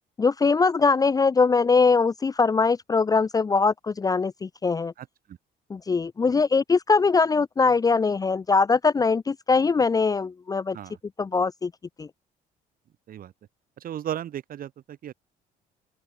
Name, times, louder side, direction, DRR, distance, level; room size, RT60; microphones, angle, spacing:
voice 1, 0.2-4.9 5.7-10.8 11.2-11.7 12.0-12.1, left 4 dB, 20° left, 0.6 m, -22 dB
voice 2, 5.0-5.4 10.7-11.0 13.1-13.3 13.8-15.1, right 10 dB, 55° right, 6.4 m, -35 dB
open air
cardioid pair, 110°, 17 cm